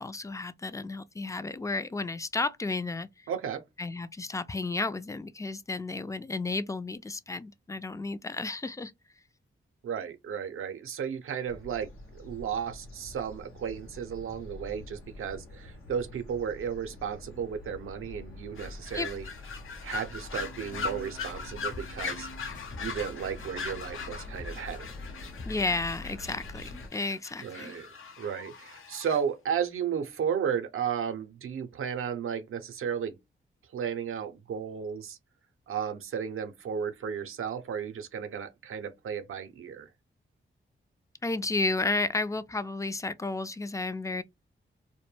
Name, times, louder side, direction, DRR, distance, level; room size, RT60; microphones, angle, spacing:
voice 1, 0.0-3.1 3.8-8.9 18.9-19.1 25.5-27.8 41.2-44.2, left 3 dB, 15° left, 0.3 m, -32 dB
voice 2, 3.3-3.6 9.8-19.3 19.8-22.3 22.8-24.9 27.4-27.9 28.2-33.2 33.7-35.2 35.7-39.9, right 7 dB, 80° right, 0.5 m, -34 dB
sound 1, 11.5-26.9, left 2 dB, 90° left, 0.9 m, -46 dB
sound 2, 18.6-29.2, left 5 dB, 75° left, 0.5 m, -40 dB
sound 3, 20.3-25.7, left 1 dB, 40° left, 0.8 m, -48 dB
2.1 x 2.1 x 3.1 m
cardioid pair, 55°, 21 cm